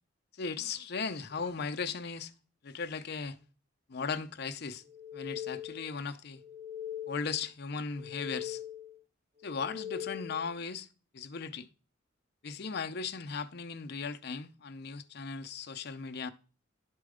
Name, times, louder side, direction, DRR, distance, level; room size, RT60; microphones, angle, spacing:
voice 1, 0.3-2.3 2.6-3.4 3.9-4.8 5.1-6.4 7.1-8.6 9.4-10.9 11.1-11.7 12.4-16.3, left 5 dB, 55° left, 0.6 m, -37 dB
sound 1, 4.9-6.0 6.4-7.5 7.9-9.0 9.4-10.5, left 10 dB, 35° right, 1.2 m, -42 dB
10.5 x 4.4 x 5.0 m
head